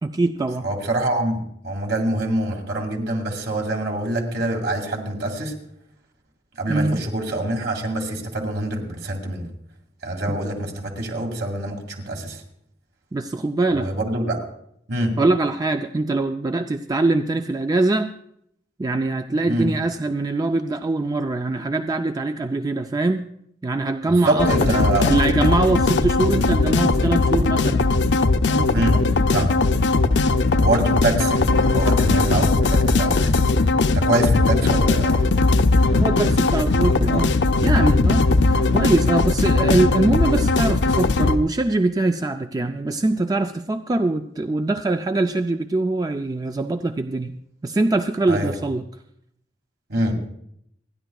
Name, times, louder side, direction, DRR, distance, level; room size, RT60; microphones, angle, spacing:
voice 1, 0.0-0.7 6.7-7.0 10.3-10.4 13.1-13.9 15.2-18.1 18.8-23.3 23.6-27.9 28.5-29.0 35.9-47.3 47.6-48.8, right 2 dB, 20° right, 7 dB, 0.4 m, -23 dB
voice 2, 0.6-5.5 6.6-9.5 10.0-12.4 13.7-14.4 14.9-15.1 19.5-19.7 24.2-25.1 28.7-29.0 29.3-29.6 30.6-33.6 33.9-35.3 38.5-38.6 48.3-48.5 49.9-50.2, right 1 dB, 65° right, 1 dB, 2.3 m, -25 dB
sound 1, 24.4-41.4, left 3 dB, 70° left, 0.6 m, -19 dB
28.5 x 10.5 x 2.3 m, 0.73 s
head